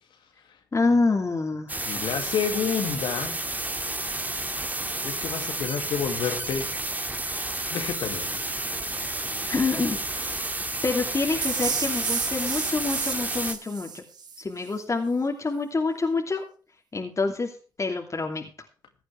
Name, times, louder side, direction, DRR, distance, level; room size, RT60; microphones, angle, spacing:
voice 1, 0.7-1.9 9.5-10.0 10.8-14.0 14.4-16.4 16.9-17.5 17.8-18.4, left 3 dB, 40° left, 2 dB, 2.7 m, -26 dB
sound 1, 1.7-13.5, right 2 dB, 20° right, 2.0 m, -31 dB
voice 2, 1.8-3.4 5.0-6.7 7.7-8.4, left 7 dB, 75° left, 7 dB, 2.2 m, -29 dB
sound 2, 11.4-14.4, right 6 dB, 55° right, 1.8 m, -31 dB
16.0 x 9.6 x 3.3 m, 0.38 s
supercardioid pair, 50°, 8 cm